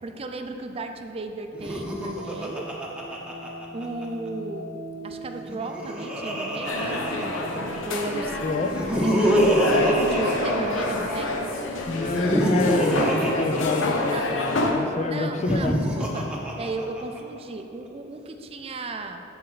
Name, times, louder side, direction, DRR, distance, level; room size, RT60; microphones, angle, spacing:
voice 1, 0.0-2.7 3.7-4.7 5.0-9.1 10.0-11.3 12.9-13.2 14.1-14.3 15.0-16.3 16.6-19.2, right 3 dB, 30° right, 6 dB, 0.4 m, -35 dB
Laughter, 1.5-4.1 5.4-7.8 8.6-11.2 12.0-14.4 15.3-17.2, equal, 5° right, 0.8 m, -25 dB
sound 1, 1.5-10.2, right 1 dB, 70° right, 1.0 m, -41 dB
sound 2, 6.6-14.7, left 2 dB, 80° left, 0.8 m, -28 dB
voice 2, 8.4-8.8 11.9-15.8, left 3 dB, 35° left, 8 dB, 0.3 m, -27 dB
13.0 x 4.3 x 4.0 m, 3.0 s
head